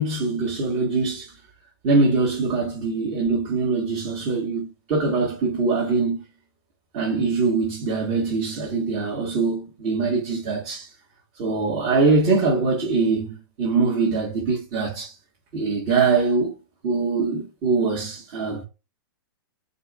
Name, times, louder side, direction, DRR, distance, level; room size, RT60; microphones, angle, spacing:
voice 1, 0.0-1.3 1.8-6.2 6.9-10.9 11.4-15.1 15.5-16.5 16.8-18.6, right 4 dB, 35° right, 1.5 m, -23 dB
4.5 x 4.1 x 2.3 m
hypercardioid pair, 155°, 12 cm